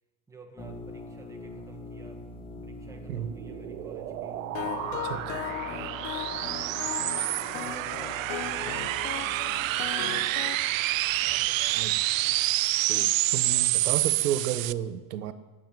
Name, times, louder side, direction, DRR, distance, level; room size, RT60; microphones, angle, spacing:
voice 1, 0.3-2.3 2.6-4.4 4.8-6.9 7.5-10.7 11.2-11.9, right 3 dB, 5° right, 3 dB, 1.4 m, -52 dB
sound 1, 0.6-11.4, left 1 dB, 10° left, 1.3 m, -45 dB
sound 2, 2.9-14.7, right 17 dB, 65° right, 0.7 m, -28 dB
sound 3, 4.5-10.6, left 12 dB, 55° left, 1.1 m, -37 dB
voice 2, 12.9-15.3, right 10 dB, 90° right, 11 dB, 1.4 m, -32 dB
16.0 x 9.0 x 9.1 m, 1.2 s
supercardioid pair, 170°, 44 cm